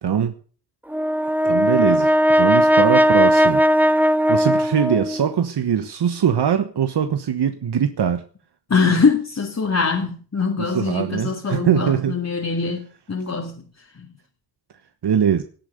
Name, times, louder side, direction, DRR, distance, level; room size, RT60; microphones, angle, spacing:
voice 1, 0.0-0.4 1.4-3.6 4.0-8.2 10.6-12.2 15.0-15.4, right 8 dB, 80° right, 1.3 m, -22 dB
Brass instrument, 0.9-5.3, equal, 5° right, 0.9 m, -17 dB
voice 2, 8.7-13.6 13.9-14.1, left 5 dB, 40° left, 2.3 m, -22 dB
18.0 x 8.9 x 6.7 m
cardioid pair, 75°, 40 cm